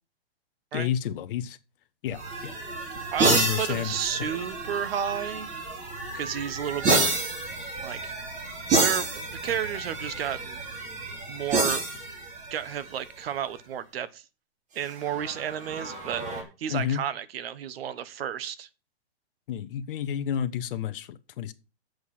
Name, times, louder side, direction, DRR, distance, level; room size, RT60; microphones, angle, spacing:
voice 1, 0.7-1.6 2.0-2.5 3.2-4.0 16.7-17.0 19.5-21.5, left 9 dB, 50° left, 1.1 m, -30 dB
sound 1, 2.1-13.3 14.9-16.4, right 3 dB, 20° right, 2.9 m, -29 dB
voice 2, 3.1-5.5 6.1-7.1 7.8-8.1 8.8-10.6 11.3-11.9 12.5-14.2 14.7-18.7, right 9 dB, 60° right, 1.2 m, -32 dB
8.0 x 6.5 x 7.2 m
hypercardioid pair, 140°, 34 cm